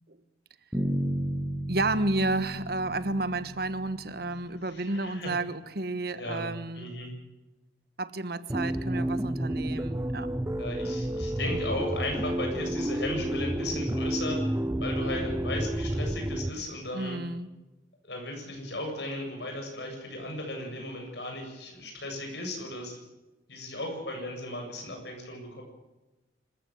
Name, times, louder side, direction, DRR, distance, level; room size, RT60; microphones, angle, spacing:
Bass guitar, 0.7-4.7, equal, ahead, 6.0 m, -34 dB
voice 1, 1.7-6.9 8.0-10.3 16.9-17.5, right 2 dB, 60° right, 13 dB, 1.3 m, -31 dB
voice 2, 4.7-5.3 6.1-6.5 6.7-7.1 10.6-14.5 14.8-17.2 18.0-23.0 23.5-25.6, left 1 dB, 70° left, 3 dB, 7.8 m, -36 dB
sound 1, 8.5-16.5, right 1 dB, 15° right, 0.7 m, -30 dB
26.0 x 15.0 x 8.0 m, 1.1 s
head